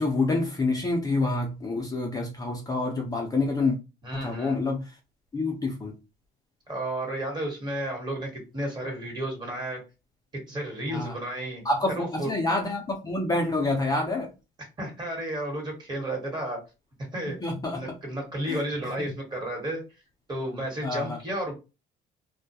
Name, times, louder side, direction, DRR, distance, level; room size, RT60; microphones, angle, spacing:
voice 1, 0.0-3.8 4.1-5.0 5.3-5.9 10.9-11.2 11.6-14.3 17.4-17.8 18.5-19.1 20.8-21.2, left 2 dB, 20° left, 0 dB, 0.5 m, -27 dB
voice 2, 4.0-4.6 6.7-9.8 10.5-11.6 12.0-12.3 14.8-16.6 17.1-17.4 17.7-19.8 20.3-21.5, right 1 dB, 25° right, 0 dB, 1.2 m, -32 dB
2.2 x 2.1 x 2.7 m, 0.28 s
cardioid pair, 110°, 17 cm